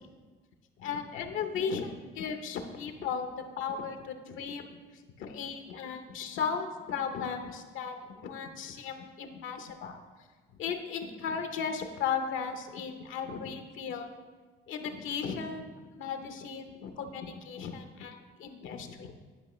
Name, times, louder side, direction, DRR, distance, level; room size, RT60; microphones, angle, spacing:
voice 1, 0.8-3.3 3.6-4.8 5.2-10.0 10.6-14.1 14.7-19.2, left 6 dB, 85° left, 6 dB, 0.7 m, -36 dB
10.5 x 5.2 x 3.1 m, 1.4 s
cardioid pair, 90°, 20 cm